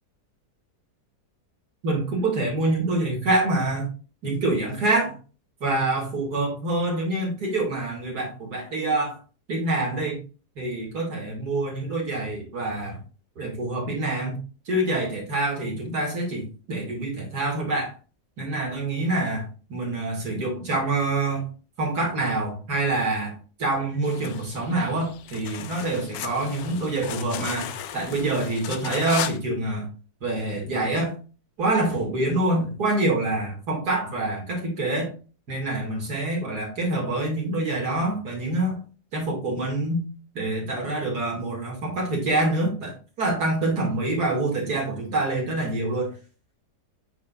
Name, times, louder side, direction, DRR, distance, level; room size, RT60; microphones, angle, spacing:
voice 1, 1.8-3.9 4.2-5.1 5.6-9.2 9.5-10.2 10.6-13.0 13.4-17.9 18.4-21.5 21.8-29.9 30.2-31.1 31.6-35.1 35.5-38.8 39.1-40.1 40.3-46.2, right 2 dB, 65° right, -1 dB, 2.9 m, -26 dB
sound 1, 24.0-29.4, left 10 dB, 70° left, 1.0 m, -36 dB
9.2 x 4.3 x 2.5 m, 0.35 s
omnidirectional pair, 1.8 m